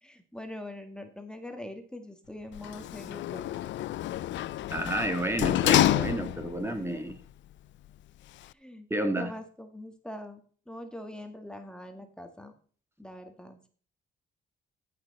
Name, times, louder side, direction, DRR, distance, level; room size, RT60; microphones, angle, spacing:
voice 1, 0.0-3.5 6.8-7.0 8.4-8.9 9.2-10.4 10.7-12.5 13.0-13.7, left 1 dB, 5° left, 1.8 m, -43 dB
sound 1, 2.2-7.3, left 9 dB, 85° left, 2.1 m, -52 dB
Sliding door, 2.5-6.7 7.1-7.2, left 14 dB, 70° left, 0.4 m, -28 dB
voice 2, 4.7-7.2 8.9-9.3, right 1 dB, 10° right, 1.8 m, -30 dB
15.0 x 6.0 x 4.2 m
cardioid pair, 90°, 20 cm